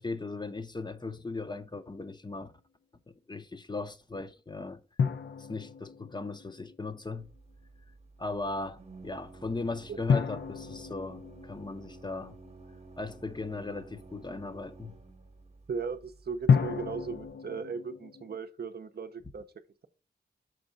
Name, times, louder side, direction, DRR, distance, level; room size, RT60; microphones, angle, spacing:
voice 1, 0.0-2.5 3.1-4.8 5.4-7.3 8.2-12.4 13.0-15.0, left 3 dB, 25° left, 0.5 m, -38 dB
sound 1, 5.0-7.2 10.1-13.0 16.5-18.4, left 6 dB, 75° left, 0.5 m, -31 dB
Organ, 7.2-17.3, right 3 dB, 35° right, 0.9 m, -52 dB
voice 2, 15.7-19.9, right 5 dB, 60° right, 0.6 m, -37 dB
6.3 x 4.5 x 3.8 m
wide cardioid pair, 65°, 19 cm